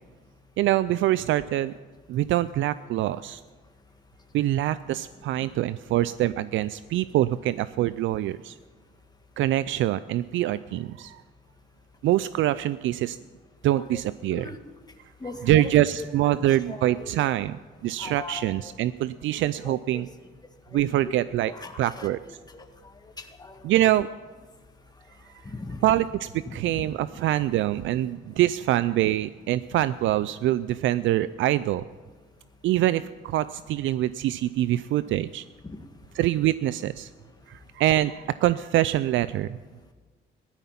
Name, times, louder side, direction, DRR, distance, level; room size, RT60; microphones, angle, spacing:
voice 1, 0.6-1.7 2.1-3.4 4.3-8.5 9.4-11.2 12.0-13.2 13.6-14.4 15.4-20.1 20.7-21.5 21.8-22.2 23.6-24.1 25.8-31.8 32.6-35.4 36.2-37.1 37.5-39.5, right 14 dB, 75° right, 15 dB, 0.4 m, -24 dB
voice 2, 15.2-17.2 18.0-18.7 19.3-20.0 21.0-22.6 23.2-23.6 25.5-25.9 26.5-26.9 35.6-35.9, left 3 dB, 20° left, 5 dB, 1.7 m, -40 dB
16.0 x 13.0 x 5.8 m, 1.4 s
cardioid pair, 90°, 20 cm